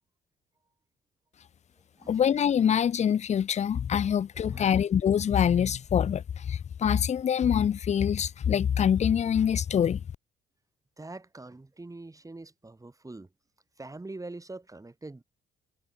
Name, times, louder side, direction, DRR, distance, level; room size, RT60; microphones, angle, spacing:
voice 1, 2.1-10.0, left 8 dB, 35° left, 0.4 m, -25 dB
voice 2, 4.5-4.9 11.0-13.3 13.8-15.2, right 2 dB, 15° right, 4.4 m, -44 dB
cardioid pair, 90°, 20 cm